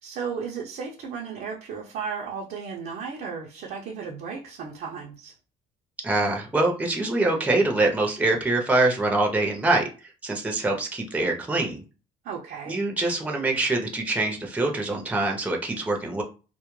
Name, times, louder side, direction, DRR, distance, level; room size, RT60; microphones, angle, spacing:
voice 1, 0.0-5.4 12.2-12.8, right 6 dB, 65° right, -1 dB, 0.6 m, -34 dB
voice 2, 6.0-9.9 10.2-11.8 12.7-16.2, right 2 dB, 10° right, 1 dB, 0.6 m, -24 dB
2.2 x 2.0 x 3.0 m, 0.34 s
cardioid pair, 110°, 17 cm